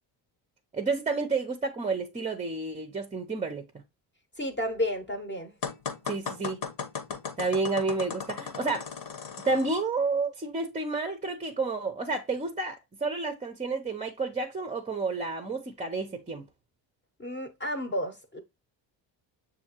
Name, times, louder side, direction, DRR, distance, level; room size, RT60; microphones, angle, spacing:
voice 1, 0.7-3.6 6.1-6.6 7.4-8.9 9.5-12.8 13.0-16.4, right 3 dB, 15° right, 0.5 m, -30 dB
voice 2, 4.4-5.5 17.2-18.4, left 1 dB, 25° left, 0.8 m, -31 dB
sound 1, 5.6-9.8, left 6 dB, 60° left, 1.0 m, -36 dB
6.3 x 2.7 x 2.8 m
cardioid pair, 85°, 46 cm